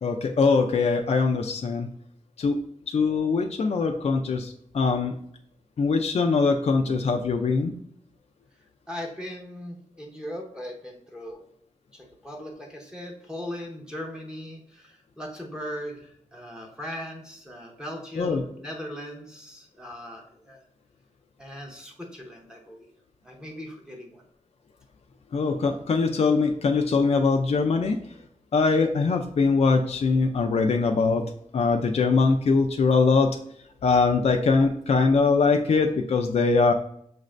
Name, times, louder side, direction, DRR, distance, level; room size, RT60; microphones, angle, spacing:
voice 1, 0.0-1.9 2.4-2.6 2.9-5.1 5.8-7.7 18.2-18.4 25.3-28.0 28.5-31.2 31.5-33.4 33.8-36.7, left 4 dB, 50° left, 4 dB, 0.4 m, -22 dB
voice 2, 8.9-11.4 11.9-20.6 21.4-22.9 23.2-24.2, equal, 5° right, -1 dB, 0.7 m, -39 dB
6.3 x 2.5 x 3.2 m, 0.69 s
wide cardioid pair, 160°, 14 cm